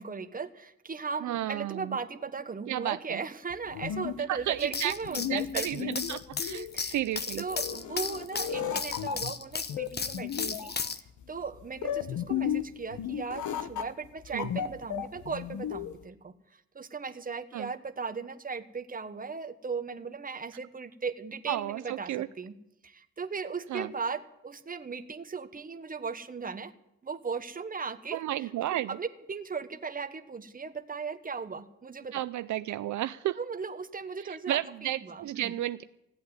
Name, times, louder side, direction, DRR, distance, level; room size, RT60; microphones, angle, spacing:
voice 1, 0.0-5.9 6.5-7.0 7.4-10.7 11.3-22.6 22.8-26.7 27.0-32.2 33.4-35.5, right 5 dB, 30° right, 10 dB, 1.1 m, -37 dB
voice 2, 1.2-2.0 2.7-3.2 4.3-7.4 14.3-14.5 17.5-17.7 21.5-22.3 23.7-23.9 28.1-28.9 32.1-33.4 34.2-35.8, right 13 dB, 70° right, 13 dB, 0.5 m, -33 dB
sound 1, 3.5-16.0, left 9 dB, 70° left, 1.0 m, -35 dB
sound 2, 4.6-11.0, left 5 dB, 35° left, 1.0 m, -34 dB
16.0 x 8.5 x 9.6 m, 0.86 s
cardioid pair, 90°, 31 cm